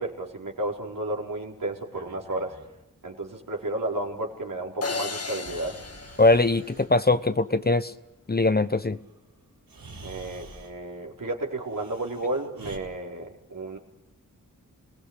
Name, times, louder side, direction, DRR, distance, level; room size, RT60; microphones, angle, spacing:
voice 1, 0.0-2.5 3.0-5.8 10.0-13.8, right 2 dB, 70° right, -1 dB, 4.6 m, -32 dB
Breathing, 1.8-2.7 5.4-6.9 9.1-9.2 9.7-10.8 11.7-12.8, right 2 dB, 85° right, 4.7 m, -47 dB
sound 1, 4.8-7.2, left 3 dB, 45° left, 1.6 m, -35 dB
voice 2, 6.2-7.9 8.3-9.0, left 2 dB, 30° left, 12 dB, 0.9 m, -21 dB
27.0 x 19.0 x 8.2 m, 0.94 s
cardioid pair, 60°, 34 cm